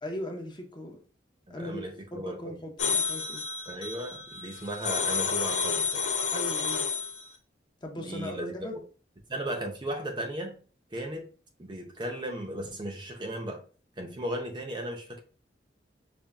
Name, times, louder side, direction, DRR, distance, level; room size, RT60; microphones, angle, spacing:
voice 1, 0.0-1.0 1.5-1.8 2.1-3.4 6.3-6.9 7.8-8.8, left 1 dB, 25° left, 2 dB, 0.6 m, -39 dB
voice 2, 1.5-2.5 3.7-6.0 8.0-8.8 9.3-10.6 10.9-11.3 11.6-13.6 14.0-15.2, right 1 dB, 25° right, 3 dB, 0.5 m, -36 dB
sound 1, 2.8-7.3, left 5 dB, 85° left, 0.8 m, -30 dB
5.1 x 2.5 x 2.2 m, 0.38 s
head